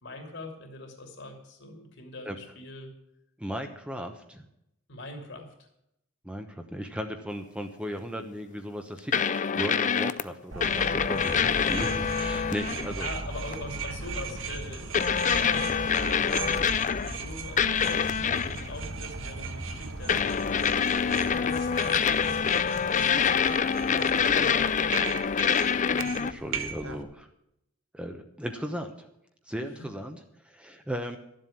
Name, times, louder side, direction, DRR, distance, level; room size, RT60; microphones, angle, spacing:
voice 1, 0.0-2.9 4.9-5.7 10.9-11.2 13.0-14.9 15.2-20.9 21.4-23.5 24.0-25.2, left 2 dB, 60° left, 4 dB, 2.8 m, -43 dB
voice 2, 3.4-4.4 6.2-13.1 24.2-24.7 25.9-27.3 27.9-29.1 29.5-31.2, equal, 5° right, 5 dB, 0.9 m, -36 dB
sound 1, 9.1-10.2 10.6-12.9 13.5-13.7 14.9-17.2 17.6-18.7 20.1-26.3, left 7 dB, 40° left, 0.5 m, -26 dB
sound 2, 10.5-27.0, right 4 dB, 75° right, 1.3 m, -37 dB
12.0 x 7.6 x 8.6 m, 0.78 s
head